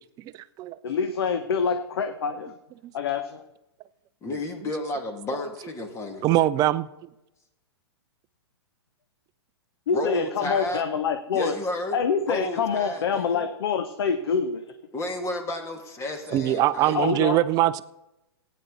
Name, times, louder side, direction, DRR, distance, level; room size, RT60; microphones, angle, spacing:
voice 1, 0.2-0.8 2.8-2.9 6.2-6.9 16.3-17.8, right 14 dB, 25° right, 16 dB, 0.5 m, -22 dB
voice 2, 0.8-2.5 2.9-3.4 9.9-11.5 11.9-14.6 16.9-17.4, left 6 dB, 65° left, 8 dB, 1.0 m, -26 dB
voice 3, 4.2-6.2 9.9-10.8 11.3-12.0 12.3-13.4 14.9-17.1, left 1 dB, 20° left, 4 dB, 2.3 m, -32 dB
17.0 x 9.6 x 4.0 m, 0.93 s
hypercardioid pair, 115°, 14 cm